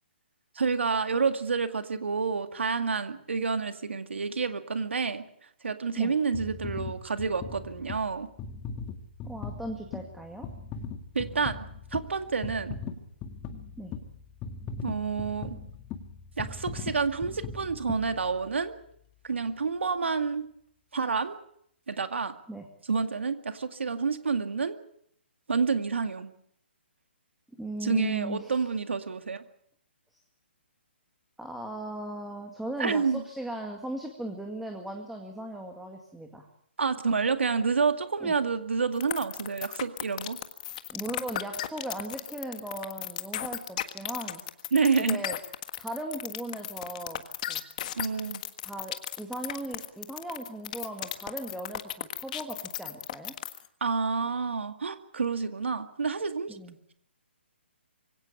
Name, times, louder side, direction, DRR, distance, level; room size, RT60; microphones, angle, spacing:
voice 1, 0.6-5.3 5.6-8.3 11.1-11.6 11.9-12.8 14.8-15.6 16.4-18.8 19.2-20.5 20.9-21.4 21.9-22.3 22.9-24.8 25.5-26.3 27.8-29.4 32.8-33.2 36.8-40.4 44.7-45.2 47.9-48.4 53.8-56.6, right 5 dB, 85° right, 8 dB, 2.1 m, -28 dB
sound 1, 6.3-18.7 19.3-19.4, left 5 dB, 20° left, 2.0 m, -40 dB
voice 2, 9.2-10.5 13.8-13.9 22.5-22.7 27.6-28.6 31.4-36.5 38.2-38.3 40.9-44.4 45.0-45.4 45.8-47.2 47.5-47.6 48.6-53.3 56.5-56.8, right 1 dB, ahead, 2 dB, 2.0 m, -38 dB
sound 2, 39.0-53.7, left 12 dB, 40° left, 1.6 m, -35 dB
23.5 x 17.5 x 8.4 m, 0.71 s
hypercardioid pair, 155°, 6 cm